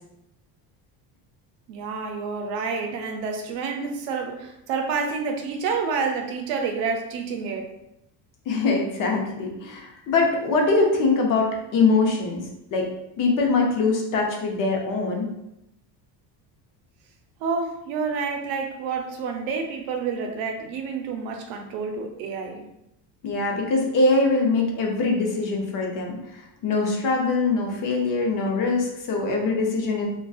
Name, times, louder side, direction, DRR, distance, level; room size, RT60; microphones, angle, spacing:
voice 1, 1.7-7.7 17.4-22.6, right 5 dB, 80° right, 3 dB, 0.6 m, -29 dB
voice 2, 8.5-12.4 12.7-12.9 13.2-15.3 23.2-30.1, left 3 dB, 45° left, 0 dB, 0.6 m, -23 dB
2.5 x 2.3 x 2.3 m, 0.85 s
cardioid pair, 125°, 46 cm